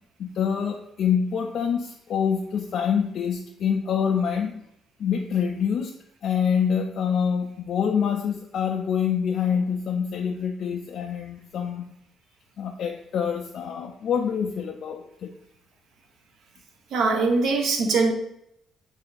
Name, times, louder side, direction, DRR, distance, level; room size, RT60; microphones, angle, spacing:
voice 1, 0.2-4.6 5.0-5.9 6.2-11.9 12.6-15.3, left 7 dB, 65° left, 3 dB, 0.3 m, -26 dB
voice 2, 16.9-18.1, right 3 dB, 75° right, 3 dB, 0.7 m, -22 dB
3.3 x 2.6 x 3.8 m, 0.78 s
cardioid pair, 90°, 0 cm